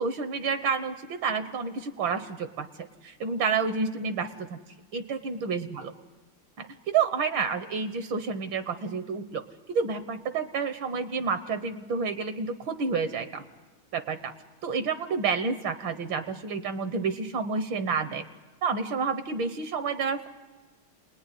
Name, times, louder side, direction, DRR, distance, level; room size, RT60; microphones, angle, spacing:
voice 1, 0.0-4.6 4.9-5.9 6.6-9.4 9.7-13.4 13.9-14.3 14.6-18.2 18.6-20.3, right 5 dB, 70° right, 10 dB, 1.7 m, -29 dB
29.5 x 20.0 x 9.8 m, 1.3 s
omnidirectional pair, 2.3 m